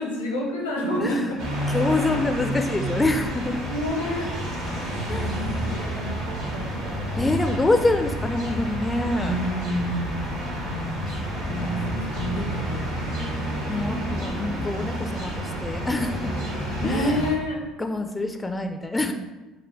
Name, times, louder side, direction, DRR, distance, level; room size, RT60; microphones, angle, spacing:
voice 1, 0.0-1.5 3.7-4.3 5.1-6.7 9.2-10.3 10.5-13.3 16.8-17.6, left 1 dB, 80° left, -1 dB, 0.8 m, -29 dB
sound 1, 1.4-17.3, right 1 dB, 75° right, 1.2 m, -29 dB
voice 2, 1.7-3.6 5.1-5.5 7.2-9.4 13.7-16.3 16.8-17.2 17.8-19.1, left 2 dB, 15° left, 6 dB, 0.3 m, -26 dB
4.2 x 2.1 x 4.6 m, 1.1 s
figure-of-eight pair, 60°, 0 cm